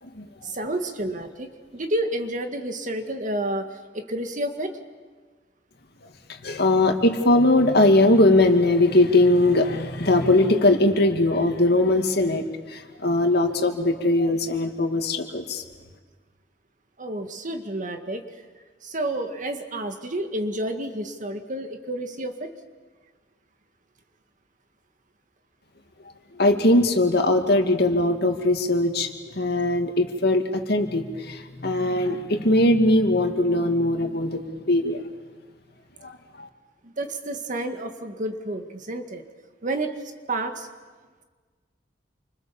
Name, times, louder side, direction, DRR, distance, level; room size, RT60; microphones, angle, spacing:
voice 1, 0.4-3.7 3.9-4.7 17.0-18.2 18.8-22.5 36.8-39.2 39.6-39.9 40.3-40.7, right 1 dB, 45° right, 6 dB, 2.0 m, -30 dB
voice 2, 6.3-15.6 26.3-29.1 29.4-35.0 36.0-36.5, left 1 dB, 60° left, 5 dB, 2.4 m, -20 dB
29.0 x 25.5 x 7.2 m, 1.5 s
head